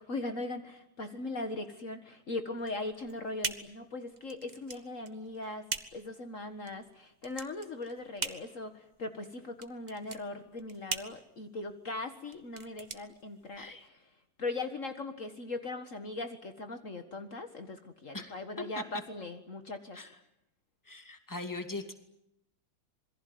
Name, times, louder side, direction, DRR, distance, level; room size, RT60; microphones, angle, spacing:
voice 1, 0.0-5.6 5.9-14.0 14.4-20.0, left 2 dB, 50° left, 7 dB, 2.0 m, -39 dB
sound 1, 2.6-13.9, right 3 dB, 25° right, 1.5 m, -42 dB
voice 2, 18.1-18.8 19.9-20.1 20.8-21.9, left 2 dB, 10° left, 6 dB, 2.5 m, -40 dB
27.0 x 22.5 x 9.4 m, 0.82 s
omnidirectional pair, 1.7 m